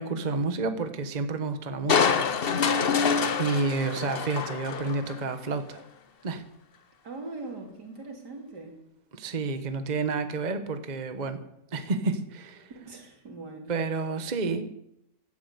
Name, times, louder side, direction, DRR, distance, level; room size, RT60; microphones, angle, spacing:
voice 1, 0.0-2.3 3.4-5.8 6.2-6.4 9.1-11.4 11.7-12.7 13.7-14.6, right 4 dB, 30° right, 9 dB, 1.1 m, -30 dB
Crushing, 1.9-5.3 5.7-5.8, left 6 dB, 45° left, 0.8 m, -26 dB
voice 2, 7.0-8.8 12.9-13.7, right 3 dB, 70° right, 3 dB, 3.4 m, -41 dB
16.0 x 12.0 x 6.8 m, 0.77 s
omnidirectional pair, 1.8 m